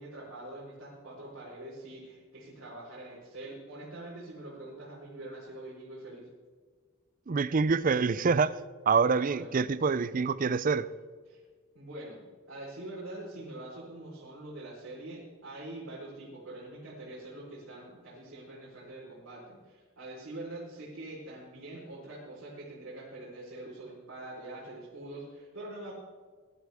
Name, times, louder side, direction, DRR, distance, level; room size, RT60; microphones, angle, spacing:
voice 1, 0.0-6.3 9.1-9.6 11.3-11.4 11.7-25.9, right 1 dB, 70° right, -8 dB, 4.4 m, -44 dB
voice 2, 7.3-8.6 8.9-10.9, right 5 dB, 40° right, 16 dB, 0.5 m, -26 dB
21.0 x 11.5 x 3.6 m, 1.5 s
head